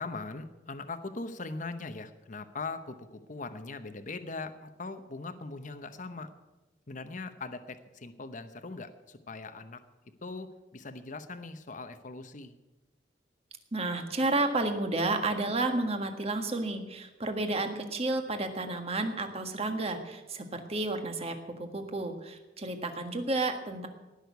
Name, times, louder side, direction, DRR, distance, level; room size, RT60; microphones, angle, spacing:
voice 1, 0.0-6.3 6.9-9.8 10.2-12.6, left 3 dB, 40° left, 9 dB, 0.9 m, -40 dB
voice 2, 13.7-23.9, right 2 dB, 30° right, 6 dB, 1.6 m, -31 dB
18.5 x 6.6 x 9.4 m, 1.1 s
head